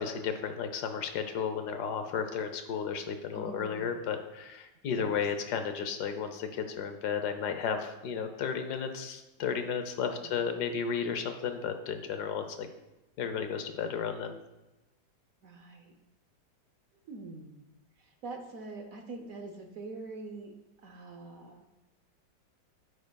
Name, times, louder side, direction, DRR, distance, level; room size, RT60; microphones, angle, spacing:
voice 1, 0.0-12.7 13.2-14.4, left 6 dB, 65° left, 8 dB, 1.2 m, -33 dB
voice 2, 3.3-4.0 5.0-5.2 10.2-10.4 15.4-15.9 17.1-17.6 18.0-20.5 20.8-21.7, right 3 dB, 60° right, 4 dB, 0.9 m, -44 dB
9.4 x 9.2 x 2.2 m, 1.0 s
omnidirectional pair, 2.1 m